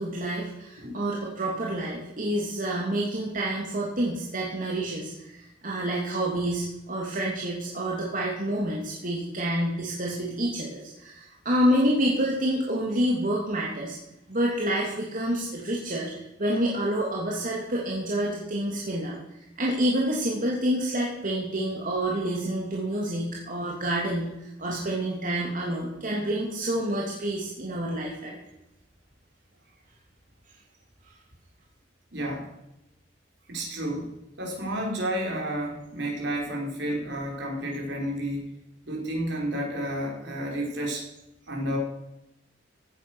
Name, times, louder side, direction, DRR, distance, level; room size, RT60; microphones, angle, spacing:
voice 1, 0.0-14.0 14.3-16.1 16.4-19.2 19.6-28.4, right 1 dB, 45° right, -3 dB, 2.8 m, -28 dB
voice 2, 32.1-32.5 33.5-38.5 38.8-41.0 41.5-41.8, right 1 dB, 70° right, -1 dB, 5.2 m, -31 dB
16.5 x 9.6 x 6.3 m, 0.89 s
head